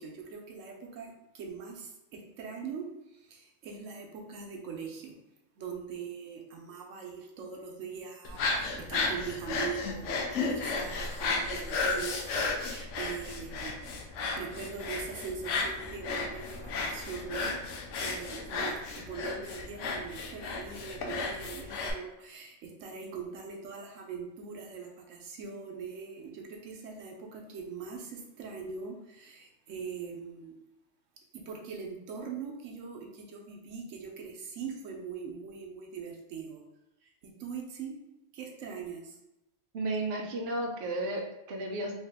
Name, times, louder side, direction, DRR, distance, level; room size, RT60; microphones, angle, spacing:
voice 1, 0.0-5.1 5.6-17.6 18.0-30.6 31.3-36.6 37.0-38.0 38.3-39.2, right 6 dB, 90° right, 1 dB, 1.0 m, -42 dB
sound 1, 8.2-21.9, left 3 dB, 80° left, 0.9 m, -34 dB
voice 2, 39.7-41.9, right 2 dB, 60° right, 1 dB, 0.8 m, -33 dB
3.2 x 2.8 x 3.4 m, 0.90 s
omnidirectional pair, 1.3 m